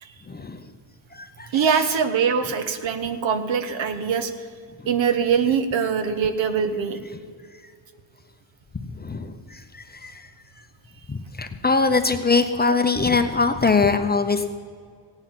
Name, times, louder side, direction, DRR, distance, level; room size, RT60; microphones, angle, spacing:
voice 1, 0.3-0.6 1.1-1.7 9.0-10.3 11.1-14.5, left 4 dB, 20° left, 7 dB, 0.6 m, -22 dB
voice 2, 1.5-4.3 4.9-7.0, right 6 dB, 65° right, 10 dB, 1.2 m, -23 dB
17.5 x 8.9 x 5.9 m, 2.1 s
cardioid pair, 115°, 50 cm